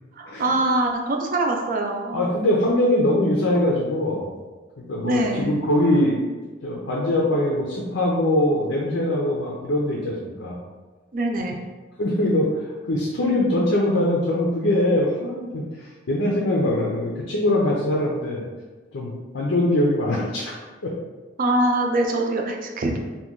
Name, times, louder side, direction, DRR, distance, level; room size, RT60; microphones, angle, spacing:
voice 1, 0.1-2.3 5.0-5.6 11.1-11.6 21.4-23.0, right 2 dB, 45° right, 2 dB, 0.4 m, -23 dB
voice 2, 2.1-4.3 4.8-6.2 6.6-10.6 12.0-15.6 16.1-18.4 18.9-20.5 20.8-20.9, left 1 dB, 90° left, -3 dB, 0.6 m, -22 dB
2.9 x 2.3 x 3.6 m, 1.3 s
head